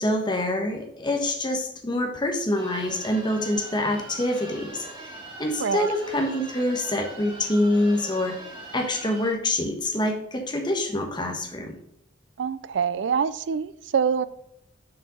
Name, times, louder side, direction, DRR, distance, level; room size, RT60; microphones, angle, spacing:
voice 1, 0.0-5.1 5.4-8.4 8.7-11.8, left 1 dB, 25° left, 3 dB, 1.2 m, -26 dB
sound 1, 2.6-9.3, right 2 dB, 25° right, 2.1 m, -41 dB
voice 2, 5.6-5.9 12.4-14.3, right 6 dB, 70° right, 16 dB, 0.4 m, -25 dB
6.7 x 5.2 x 5.5 m, 0.76 s
head